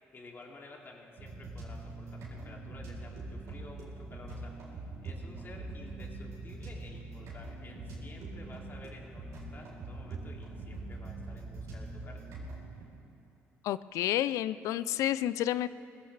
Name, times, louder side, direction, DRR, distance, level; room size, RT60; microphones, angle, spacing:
voice 1, 0.1-12.3, left 3 dB, 40° left, -1 dB, 2.7 m, -52 dB
sound 1, 1.2-12.8, right 2 dB, 80° right, 3.8 m, -43 dB
voice 2, 13.6-15.7, left 12 dB, 80° left, 16 dB, 0.4 m, -30 dB
20.5 x 16.0 x 3.3 m, 2.7 s
supercardioid pair, 70°, 5 cm